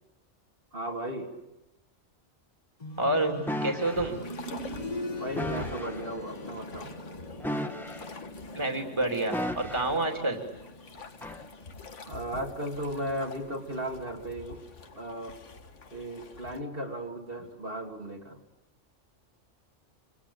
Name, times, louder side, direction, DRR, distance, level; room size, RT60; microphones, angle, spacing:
voice 1, 0.7-1.3 5.2-7.0 12.1-14.6 14.9-15.4 15.9-18.4, right 1 dB, 50° right, 1 dB, 3.1 m, -36 dB
sound 1, 2.8-13.6 13.9-14.0 14.9-15.0, left 1 dB, 35° left, 2.0 m, -42 dB
voice 2, 3.0-4.2 8.5-10.4, right 2 dB, 25° right, 3 dB, 2.8 m, -28 dB
sound 2, 3.5-4.1 5.4-6.0 7.4-8.3 9.3-10.1 11.2-11.4, equal, ahead, 1.8 m, -34 dB
sound 3, 3.8-16.6, left 4 dB, 80° left, 2.0 m, -47 dB
26.5 x 26.0 x 8.6 m, 0.94 s
omnidirectional pair, 1.2 m